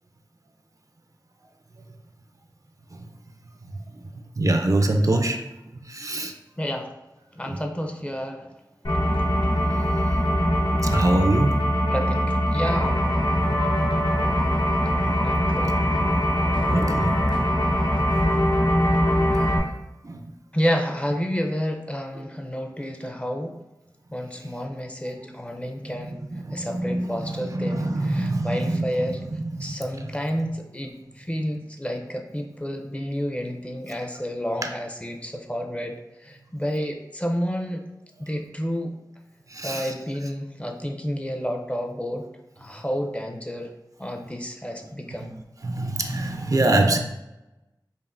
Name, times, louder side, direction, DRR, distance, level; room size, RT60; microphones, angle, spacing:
voice 1, 4.4-5.4 5.9-6.3 7.5-7.6 10.8-11.6 16.7-17.2 20.0-20.3 25.9-29.2 29.4-29.7 34.6-34.7 39.5-39.9 45.6-47.0, right 2 dB, 45° right, 4 dB, 0.4 m, -24 dB
voice 2, 6.6-6.9 7.3-8.5 11.9-13.0 15.2-15.8 16.5-16.6 20.5-23.6 24.1-26.2 26.5-29.2 29.6-37.8 38.2-38.9 39.6-42.2 42.6-43.7 44.0-45.3, equal, 15° left, 3 dB, 0.5 m, -30 dB
sound 1, 8.8-19.6, equal, 75° left, 0.9 m, -22 dB
5.2 x 2.5 x 2.5 m, 0.97 s
wide cardioid pair, 50°, 8 cm